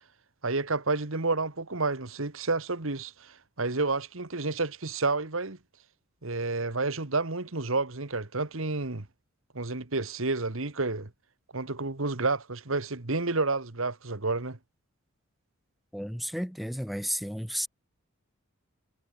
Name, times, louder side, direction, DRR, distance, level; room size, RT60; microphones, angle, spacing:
voice 1, 0.4-3.1 3.6-5.6 6.2-9.0 9.5-11.1 11.5-14.6, right 3 dB, 65° right, 1.8 m, -30 dB
voice 2, 15.9-17.7, equal, ahead, 1.3 m, -33 dB
head